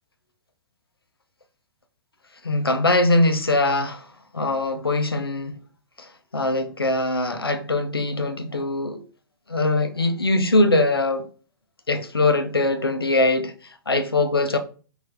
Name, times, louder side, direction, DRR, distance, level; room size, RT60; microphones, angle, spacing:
voice 1, 2.4-4.1 4.3-5.6 6.0-9.0 9.5-11.3 11.9-14.6, left 2 dB, 85° left, 0.6 m, -22 dB
4.2 x 2.6 x 4.8 m
figure-of-eight pair, 115°, 12 cm